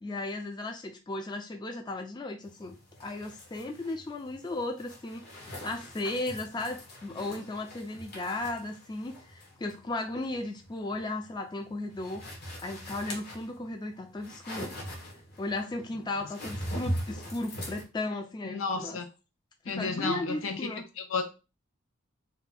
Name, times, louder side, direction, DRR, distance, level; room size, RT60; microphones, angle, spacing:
voice 1, 0.0-5.2 5.6-12.2 12.6-14.7 15.4-19.0 19.7-20.8, left 2 dB, 20° left, 5 dB, 0.3 m, -35 dB
sound 1, 2.4-17.8, equal, 50° left, 1.0 m, -42 dB
voice 2, 18.4-19.0 19.6-20.7 21.0-21.3, left 4 dB, 75° left, 5 dB, 0.7 m, -32 dB
2.7 x 2.2 x 4.0 m, 0.30 s
head